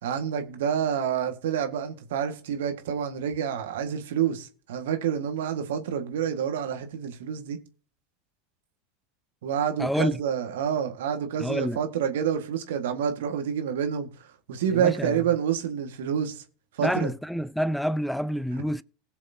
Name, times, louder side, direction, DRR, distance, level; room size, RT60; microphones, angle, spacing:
voice 1, 0.0-7.6 9.4-14.1 14.5-16.4 16.8-17.1, right 8 dB, 75° right, 1.7 m, -28 dB
voice 2, 9.8-10.2 11.4-11.8 14.7-15.2 16.8-18.8, equal, ahead, 0.5 m, -28 dB
20.0 x 7.0 x 2.8 m
hypercardioid pair, 90°, 0 cm